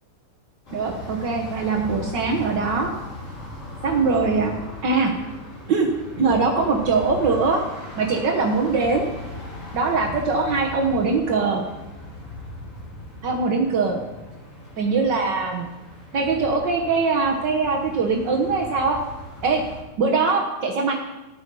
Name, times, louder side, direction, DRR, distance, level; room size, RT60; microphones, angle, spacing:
sound 1, 0.6-19.8, left 1 dB, 50° left, 5.8 m, -38 dB
voice 1, 0.7-2.9 3.8-4.5 4.8-5.1 5.7-5.9 6.2-7.6 8.0-9.1 9.7-11.6 13.2-14.0 14.8-15.7 16.1-19.0 19.4-19.6 20.0-20.9, right 4 dB, 80° right, 1 dB, 1.0 m, -22 dB
13.0 x 10.0 x 5.3 m, 1.0 s
omnidirectional pair, 3.6 m